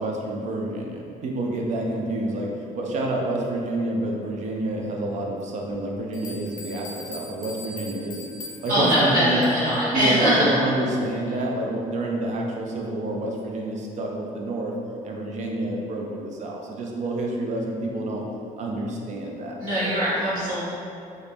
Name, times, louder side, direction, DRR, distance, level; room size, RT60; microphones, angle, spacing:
voice 1, 0.0-8.3 8.6-9.4 9.9-14.7 15.0-18.2 18.6-20.3, right 1 dB, 55° right, -1 dB, 0.4 m, -28 dB
sound 1, 6.1-9.8, left 3 dB, 65° left, 0.5 m, -41 dB
voice 2, 8.7-10.3 19.6-20.6, equal, 70° right, -11 dB, 1.4 m, -22 dB
2.5 x 2.1 x 3.3 m, 2.6 s
cardioid pair, 105°, 15 cm